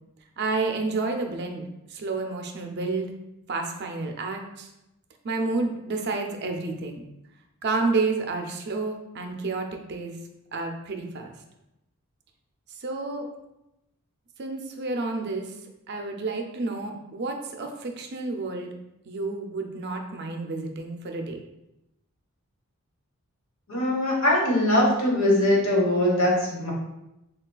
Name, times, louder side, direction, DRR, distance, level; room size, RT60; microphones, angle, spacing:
voice 1, 0.4-1.6 1.9-3.1 3.5-4.7 5.2-7.0 7.6-10.1 10.5-11.3 12.7-13.3 14.4-15.5 15.9-18.7 19.1-21.4, right 3 dB, 50° right, 3 dB, 0.4 m, -30 dB
voice 2, 23.7-26.7, left 1 dB, 60° left, -3 dB, 1.2 m, -21 dB
6.2 x 2.3 x 2.3 m, 0.90 s
head